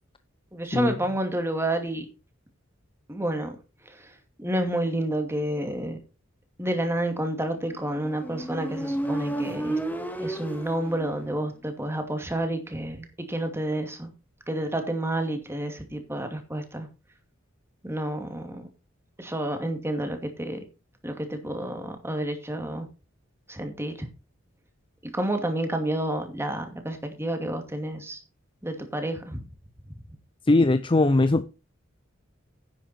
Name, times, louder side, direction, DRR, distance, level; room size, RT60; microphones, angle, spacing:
voice 1, 0.5-2.1 3.1-3.6 3.8-6.0 6.6-9.8 10.2-14.1 14.5-16.9 17.8-18.7 19.2-20.6 21.0-22.9 23.5-23.9 25.0-28.2 28.6-29.5, right 1 dB, 15° right, 2.4 m, -30 dB
Motorcycle, 7.8-11.5, right 1 dB, 10° left, 1.9 m, -32 dB
voice 2, 30.5-31.5, left 2 dB, 25° left, 0.5 m, -20 dB
10.5 x 9.2 x 4.3 m
head